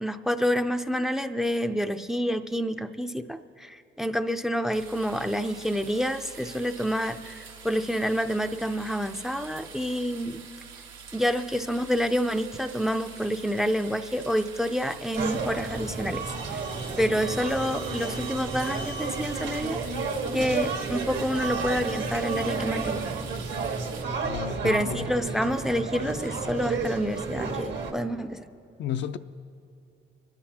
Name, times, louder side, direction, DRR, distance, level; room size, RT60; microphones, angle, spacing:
voice 1, 0.0-10.4 11.1-16.6 17.0-19.8 20.3-23.1 24.6-28.5, equal, ahead, 0.4 m, -28 dB
sound 1, 4.7-24.0, right 6 dB, 85° right, 1.4 m, -45 dB
sound 2, 15.1-27.9, right 4 dB, 65° right, 1.3 m, -31 dB
voice 2, 24.3-25.1 28.8-29.2, left 10 dB, 65° left, 0.4 m, -32 dB
28.5 x 10.5 x 2.8 m
cardioid pair, 90°, 20 cm